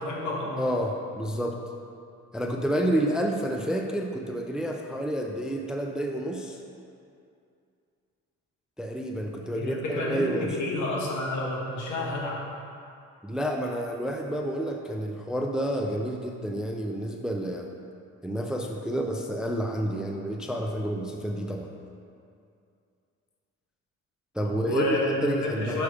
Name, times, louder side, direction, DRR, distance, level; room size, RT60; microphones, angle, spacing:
voice 1, 0.0-0.6 9.5-12.4 24.4-25.8, left 2 dB, 75° left, -3 dB, 1.3 m, -30 dB
voice 2, 0.6-1.6 2.3-6.6 8.8-10.6 13.2-17.7 18.2-21.7 24.3-25.8, right 1 dB, ahead, 2 dB, 0.4 m, -29 dB
6.3 x 3.4 x 4.7 m, 2.4 s
cardioid pair, 90°, 30 cm